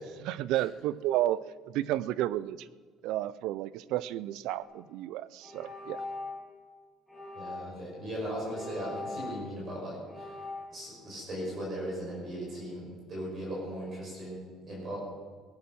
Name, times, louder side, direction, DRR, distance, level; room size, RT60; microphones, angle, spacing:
voice 1, 0.2-1.4 1.7-2.7 3.0-6.0, right 14 dB, 65° right, 19 dB, 0.4 m, -31 dB
sound 1, 4.6-4.8 5.4-6.5 7.1-7.8 8.4-9.7 10.1-10.7, left 3 dB, ahead, 3.0 m, -41 dB
voice 2, 7.3-10.4 10.7-14.4 14.7-15.0, equal, 30° right, -4 dB, 5.8 m, -38 dB
18.5 x 10.5 x 6.2 m, 1.5 s
cardioid pair, 180°, 0 cm